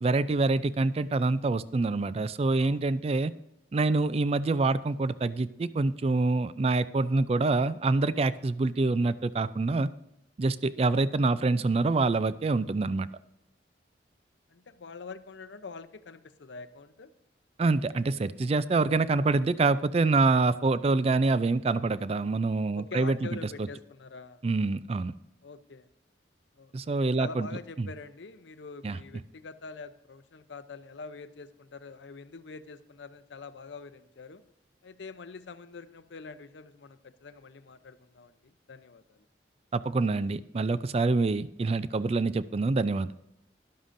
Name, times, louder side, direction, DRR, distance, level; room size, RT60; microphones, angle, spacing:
voice 1, 0.0-3.3 3.7-9.9 10.4-13.1 17.6-23.7 24.4-25.1 26.7-27.5 27.8-27.9 28.8-29.0 39.7-43.1, right 3 dB, 35° right, 15 dB, 0.3 m, -26 dB
voice 2, 2.6-3.3 14.5-17.1 22.7-24.4 25.4-25.9 26.6-26.7 27.0-34.4 34.8-39.3, left 4 dB, 80° left, 12 dB, 0.6 m, -45 dB
12.5 x 11.5 x 2.6 m, 0.86 s
head